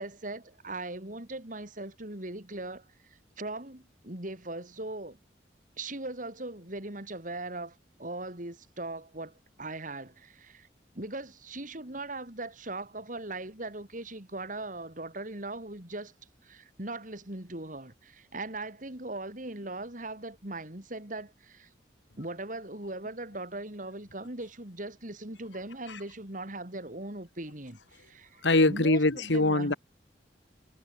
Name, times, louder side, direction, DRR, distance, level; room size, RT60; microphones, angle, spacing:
voice 1, 0.0-5.2 5.8-10.7 10.9-16.1 16.4-21.7 22.2-29.8, right 2 dB, 45° right, 3.7 m, -39 dB
voice 2, 28.4-29.7, left 2 dB, 90° left, 1.8 m, -23 dB
head